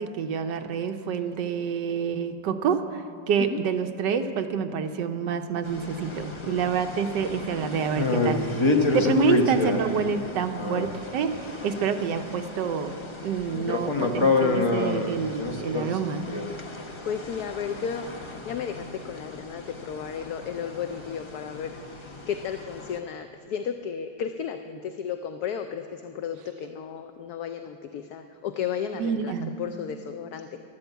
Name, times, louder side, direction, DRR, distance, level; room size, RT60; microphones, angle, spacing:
voice 1, 0.0-3.0 3.3-8.4 8.9-11.3 11.6-13.0 13.2-16.2 28.9-29.5, right 6 dB, 70° right, 6 dB, 1.4 m, -27 dB
sound 1, 5.6-23.0, left 3 dB, 30° left, 0.5 m, -29 dB
voice 2, 17.1-18.1 18.4-29.3 29.6-30.6, left 7 dB, 70° left, 8 dB, 1.0 m, -33 dB
13.0 x 12.0 x 8.0 m, 2.5 s
omnidirectional pair, 2.0 m